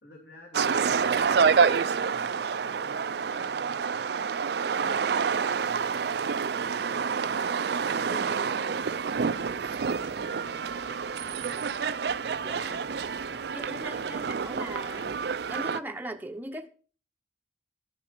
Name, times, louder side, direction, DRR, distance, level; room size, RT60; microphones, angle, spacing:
voice 1, 0.0-11.7 12.1-14.4, left 2 dB, 60° left, 2.8 m, -52 dB
sound 1, 0.5-15.8, right 6 dB, 60° right, 0.4 m, -28 dB
voice 2, 8.1-8.7 12.4-12.8 13.5-15.2 15.5-16.7, right 1 dB, 10° right, 0.7 m, -39 dB
sound 2, 8.7-15.7, left 2 dB, 35° left, 1.4 m, -53 dB
11.5 x 7.3 x 5.8 m
head